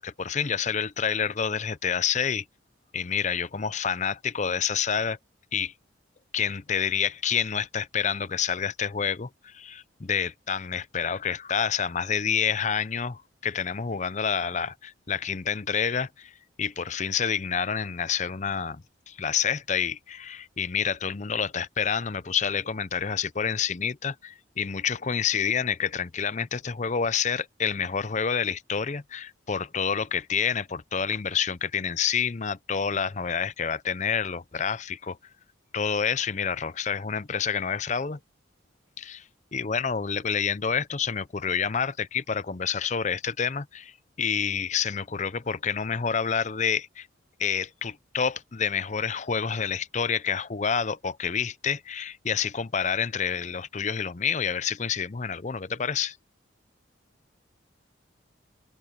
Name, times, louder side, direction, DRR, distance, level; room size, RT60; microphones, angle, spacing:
voice 1, 0.0-2.4 2.9-5.2 5.5-5.7 6.3-16.3 16.6-35.2 35.7-38.2 39.0-39.2 39.5-43.9 44.2-47.1 47.4-56.2, left 7 dB, 35° left, 0.6 m, -28 dB
head